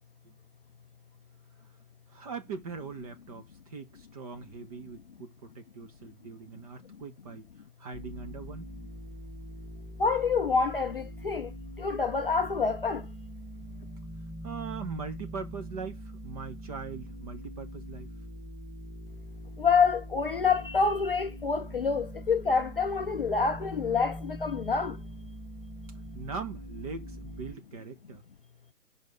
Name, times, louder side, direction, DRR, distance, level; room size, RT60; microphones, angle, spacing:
voice 1, 2.1-7.5 7.8-8.7 14.4-18.1 26.1-28.2, right 5 dB, 25° right, 0.9 m, -41 dB
sound 1, 7.9-27.5, equal, 5° left, 2.1 m, -43 dB
voice 2, 10.0-11.5 11.8-13.0 19.6-25.0, left 5 dB, 40° left, 0.5 m, -27 dB
5.4 x 4.4 x 5.3 m
hypercardioid pair, 150°, 46 cm